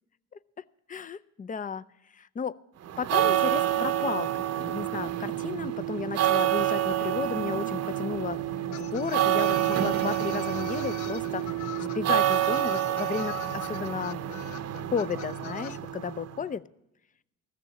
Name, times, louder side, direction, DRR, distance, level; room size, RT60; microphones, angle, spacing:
voice 1, 0.9-1.8 2.2-2.6 3.0-4.3 4.6-8.4 8.7-11.5 11.8-14.2 14.9-16.6, left 6 dB, 25° left, 16 dB, 0.5 m, -33 dB
sound 1, 2.9-16.4, right 12 dB, 55° right, 0.7 m, -28 dB
sound 2, 8.7-15.8, left 10 dB, 75° left, 0.6 m, -43 dB
15.0 x 6.8 x 8.3 m, 0.88 s
cardioid pair, 90°, 30 cm